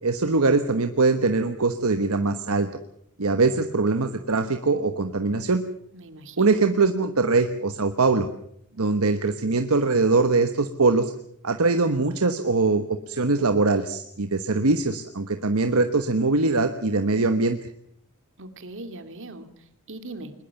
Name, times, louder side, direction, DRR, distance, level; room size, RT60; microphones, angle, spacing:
voice 1, 0.0-2.7 3.2-5.6 6.4-8.3 8.8-11.1 11.4-17.6, right 3 dB, 75° right, 8 dB, 1.2 m, -22 dB
voice 2, 5.9-6.6 18.4-20.3, right 2 dB, 60° right, 8 dB, 2.5 m, -40 dB
21.5 x 21.0 x 7.1 m, 0.71 s
head